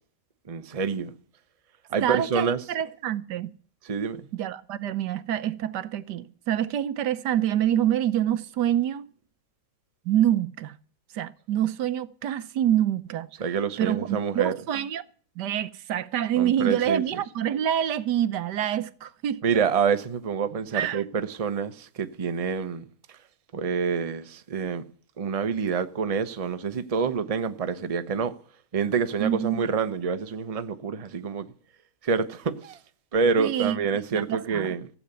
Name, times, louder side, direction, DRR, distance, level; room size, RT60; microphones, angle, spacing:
voice 1, 0.5-1.1 1.9-2.6 3.8-4.3 13.4-14.5 16.4-17.2 19.4-22.9 23.5-24.8 25.2-28.4 28.7-31.5 32.0-32.8 33.1-34.9, right 5 dB, 30° right, 0.6 m, -27 dB
voice 2, 2.0-3.5 4.3-9.1 10.0-10.7 11.1-13.3 13.8-15.0 15.4-19.4 20.7-21.0 29.2-29.6 33.4-33.8 34.1-34.7, right 11 dB, 75° right, 1.4 m, -26 dB
15.0 x 8.5 x 6.8 m
omnidirectional pair, 1.8 m